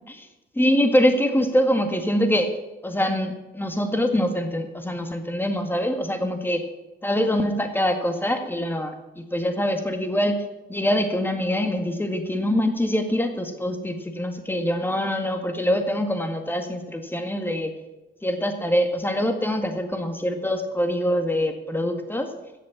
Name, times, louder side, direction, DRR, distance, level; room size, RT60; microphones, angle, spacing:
voice 1, 0.5-2.5 2.8-6.6 7.0-10.4 10.7-17.7 18.2-22.3, equal, 10° left, 5 dB, 1.9 m, -24 dB
16.5 x 6.7 x 7.2 m, 1.1 s
cardioid pair, 90°, 20 cm